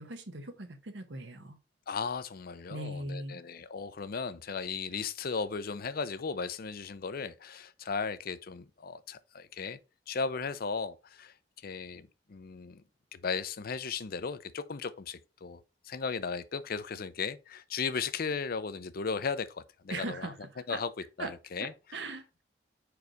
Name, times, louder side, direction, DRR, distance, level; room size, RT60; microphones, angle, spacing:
voice 1, 0.0-1.6 2.7-3.4 19.9-20.3 20.7-20.8 21.2-21.3 21.6-22.4, right 2 dB, 75° right, 1.2 m, -39 dB
voice 2, 1.9-9.8 10.1-11.3 11.6-12.8 13.1-20.3 20.7-20.9 21.2-21.7, left 5 dB, 55° left, 0.6 m, -36 dB
4.9 x 4.7 x 5.1 m
head